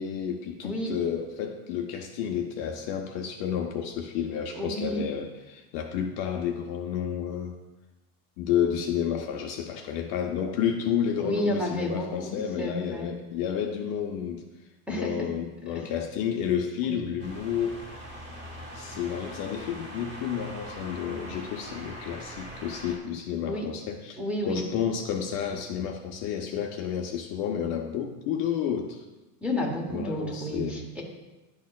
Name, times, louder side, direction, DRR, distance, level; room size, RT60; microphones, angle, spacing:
voice 1, 0.0-7.6 8.4-14.4 14.9-17.8 18.7-29.0 29.9-30.8, left 8 dB, 45° left, 3 dB, 0.5 m, -31 dB
voice 2, 0.6-1.0 4.5-5.1 11.2-13.1 14.9-15.3 15.7-15.9 16.8-17.0 23.4-23.7 24.2-24.6 29.4-31.0, left 1 dB, 5° right, -1 dB, 0.8 m, -31 dB
sound 1, 17.2-23.0, equal, 20° right, 1.6 m, -42 dB
11.0 x 4.2 x 2.3 m, 1.1 s
supercardioid pair, 140°, 48 cm